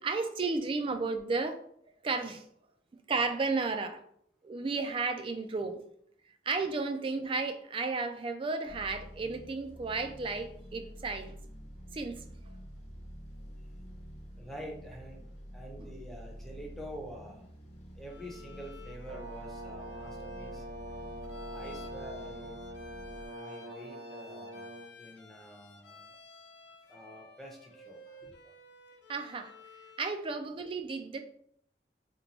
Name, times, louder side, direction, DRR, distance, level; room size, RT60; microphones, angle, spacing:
voice 1, 0.0-1.6 2.0-2.4 3.1-4.0 4.4-5.8 6.5-11.3 11.9-12.2 29.1-29.5 30.0-31.2, right 4 dB, 30° right, 8 dB, 0.3 m, -33 dB
sound 1, 8.7-23.3, equal, 40° left, 0.7 m, -48 dB
voice 2, 14.4-15.2 15.5-17.5 18.0-20.6 21.5-22.6 23.3-26.1 26.9-28.3, equal, ahead, -1 dB, 0.6 m, -47 dB
Bowed string instrument, 18.1-30.2, left 2 dB, 80° left, 0.5 m, -54 dB
Brass instrument, 19.1-24.9, equal, 60° right, 0.7 m, -44 dB
2.9 x 2.2 x 3.9 m, 0.67 s
head